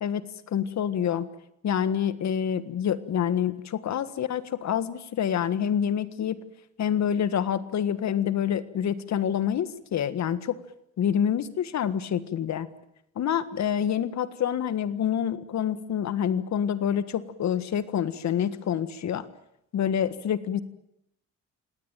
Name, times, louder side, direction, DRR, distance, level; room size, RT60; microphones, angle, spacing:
voice 1, 0.5-1.3 1.6-6.4 6.8-10.6 11.0-12.7 13.1-19.3 19.7-20.6, left 9 dB, 65° left, 14 dB, 1.7 m, -27 dB
26.5 x 18.5 x 9.1 m, 0.81 s
cardioid pair, 90°, 30 cm